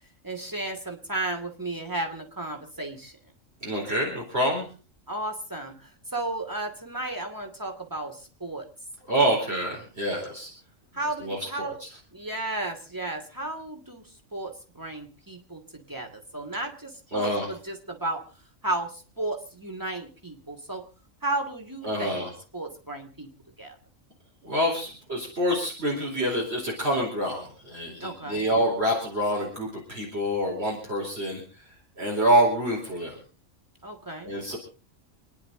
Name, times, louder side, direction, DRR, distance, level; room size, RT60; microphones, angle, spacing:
voice 1, 0.2-3.1 5.1-8.7 10.9-11.8 12.1-14.0 14.3-18.3 18.6-20.8 21.2-22.3 22.5-23.3 23.6-23.8 28.0-28.4 33.8-34.6, right 2 dB, 15° right, 4 dB, 2.6 m, -33 dB
voice 2, 3.6-4.7 9.1-10.5 11.2-11.7 17.1-17.5 21.8-22.3 24.4-31.4 32.0-33.2 34.2-34.6, equal, 50° right, -2 dB, 4.6 m, -26 dB
29.0 x 10.5 x 3.9 m, 0.37 s
omnidirectional pair, 1.4 m